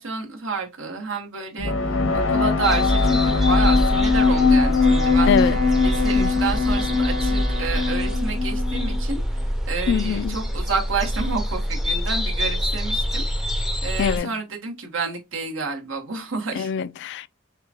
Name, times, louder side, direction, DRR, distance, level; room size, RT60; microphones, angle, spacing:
voice 1, 0.0-5.3 5.8-9.2 9.7-16.7, right 4 dB, 70° right, 1.3 m, -30 dB
sound 1, 1.6-9.1, left 4 dB, 90° left, 1.0 m, -21 dB
sound 2, 2.6-14.2, equal, ahead, 0.6 m, -25 dB
Wind instrument woodwind instrument, 4.6-8.5, right 2 dB, 40° right, 0.9 m, -35 dB
voice 2, 5.3-5.6 6.1-6.3 9.9-10.4 14.0-14.3 16.5-17.3, left 7 dB, 60° left, 0.3 m, -23 dB
6.6 x 2.2 x 2.9 m
head